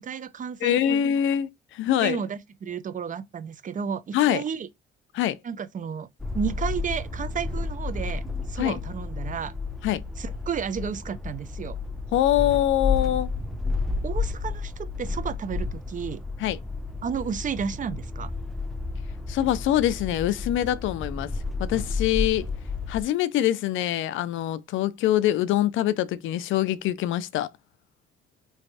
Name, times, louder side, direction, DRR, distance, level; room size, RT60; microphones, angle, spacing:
voice 1, 0.0-1.0 2.0-4.7 5.4-6.1 6.3-8.2 8.5-9.5 10.2-11.8 14.0-16.2 17.0-18.3, right 7 dB, 40° right, 0.5 m, -32 dB
voice 2, 0.6-2.2 4.1-4.4 5.1-5.4 8.6-8.8 9.8-10.0 12.1-13.3 16.4-16.6 19.3-21.3 21.6-22.5 22.9-27.5, left 12 dB, 80° left, 0.4 m, -24 dB
sound 1, 6.2-23.0, left 4 dB, ahead, 0.6 m, -31 dB
3.3 x 3.1 x 2.7 m
cardioid pair, 90°, 20 cm